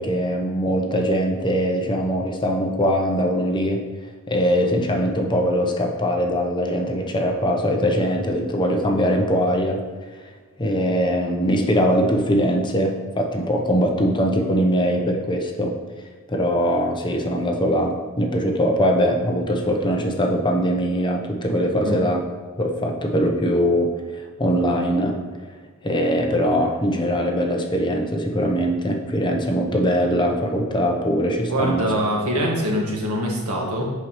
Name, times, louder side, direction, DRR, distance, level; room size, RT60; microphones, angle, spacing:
voice 1, 0.0-3.8 4.3-9.8 10.6-15.8 16.3-22.2 22.6-25.2 25.8-31.9, equal, 20° left, 2 dB, 0.6 m, -21 dB
voice 2, 31.4-33.8, equal, 90° right, -2 dB, 1.6 m, -23 dB
7.9 x 5.9 x 3.0 m, 1.4 s
head